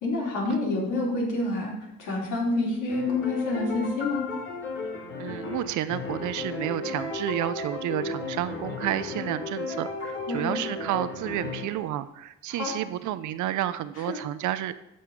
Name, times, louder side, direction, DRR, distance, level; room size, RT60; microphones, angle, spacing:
voice 1, 0.0-1.7 2.0-4.2 10.3-10.5 12.5-12.7 14.1-14.2, left 2 dB, 85° left, -4 dB, 2.9 m, -27 dB
sound 1, 2.9-11.9, left 3 dB, 40° left, 2.5 m, -34 dB
voice 2, 5.2-14.7, right 13 dB, 75° right, 14 dB, 0.5 m, -30 dB
7.7 x 5.5 x 5.1 m, 0.90 s
cardioid pair, 90°, 30 cm